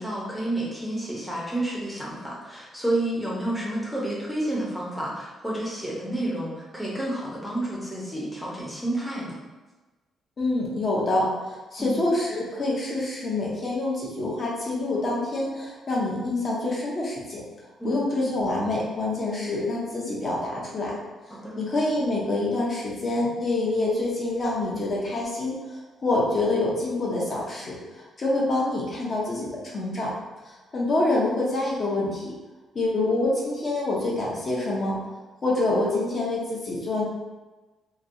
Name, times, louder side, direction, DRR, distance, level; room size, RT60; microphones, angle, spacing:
voice 1, 0.0-9.3 11.8-12.0 17.8-18.0 21.3-21.5, right 1 dB, ahead, -6 dB, 0.7 m, -30 dB
voice 2, 10.4-17.4 17.8-20.9 21.6-30.1 30.4-32.3 32.7-34.9 35.4-37.0, left 2 dB, 40° left, -5 dB, 0.7 m, -26 dB
3.0 x 2.7 x 2.6 m, 1.2 s
cardioid pair, 125°, 0 cm